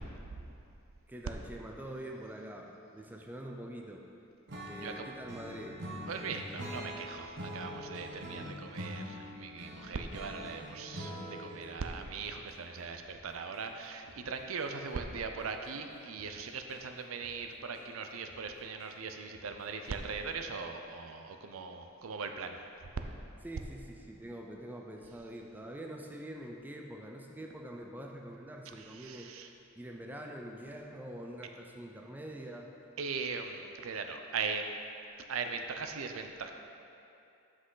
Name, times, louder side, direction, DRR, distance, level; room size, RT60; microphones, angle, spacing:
voice 1, 1.1-4.0 4.7-5.8 23.4-29.3 29.8-32.7, right 1 dB, 10° right, 1 dB, 0.4 m, -45 dB
Acoustic guitar / Strum, 4.5-11.7, equal, 55° right, 1.0 m, -43 dB
voice 2, 4.8-5.1 6.1-22.6 28.8-29.5 33.0-34.7 35.3-36.5, right 5 dB, 70° right, 5 dB, 0.5 m, -40 dB
sound 1, 12.0-20.3, left 2 dB, 85° left, 1.0 m, -63 dB
7.4 x 6.3 x 3.9 m, 2.7 s
head